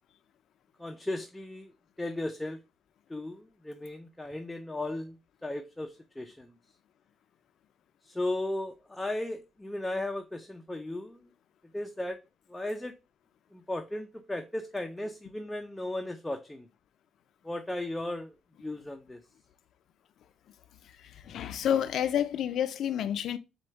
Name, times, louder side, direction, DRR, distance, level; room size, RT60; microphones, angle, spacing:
voice 1, 0.8-1.7 2.0-2.6 3.1-6.5 8.0-11.3 11.7-12.2 12.5-12.9 13.5-16.7 17.4-18.3 18.6-19.2, left 1 dB, 10° left, 0.5 m, -36 dB
voice 2, 20.8-23.4, left 9 dB, 70° left, 0.5 m, -30 dB
4.3 x 2.3 x 4.4 m
supercardioid pair, 65°, 0 cm